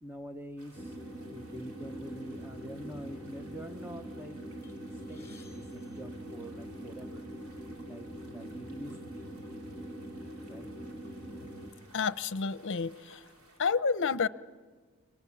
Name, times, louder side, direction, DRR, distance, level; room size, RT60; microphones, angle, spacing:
voice 1, 0.0-0.9 1.3-4.4 4.9-7.3 7.9-9.3 10.5-10.7, right 1 dB, 10° right, 6 dB, 0.8 m, -45 dB
sound 1, 0.6-13.6, right 2 dB, 75° right, 3.6 m, -60 dB
sound 2, 0.7-11.7, right 1 dB, 30° right, 2.2 m, -43 dB
sound 3, 4.6-7.0 7.8-7.9 8.2-8.4 9.3-9.4 9.9-11.1, left 4 dB, 15° left, 3.5 m, -62 dB
voice 2, 11.9-13.3 13.6-14.3, left 5 dB, 55° left, 16 dB, 0.7 m, -30 dB
27.5 x 24.0 x 7.1 m, 1.4 s
head